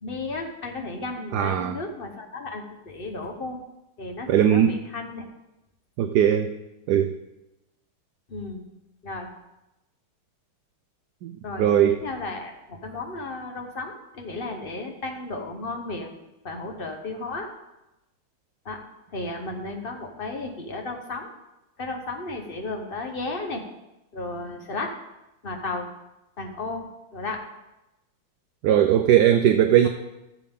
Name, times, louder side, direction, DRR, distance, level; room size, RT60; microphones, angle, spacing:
voice 1, 0.0-3.6 4.0-5.3 8.3-8.6 9.0-9.3 11.4-11.6 12.0-16.1 16.4-17.5 18.6-18.8 19.1-21.3 21.8-23.6 24.1-24.9 25.4-25.9 26.4-26.9 27.1-27.4, left 2 dB, 35° left, 3 dB, 0.9 m, -34 dB
voice 2, 1.3-1.8 4.3-4.7 6.0-6.5 6.9-7.1 11.2-11.3 11.6-12.0 28.6-29.9, right 10 dB, 75° right, 7 dB, 1.0 m, -19 dB
14.0 x 7.2 x 3.6 m, 0.94 s
omnidirectional pair, 2.2 m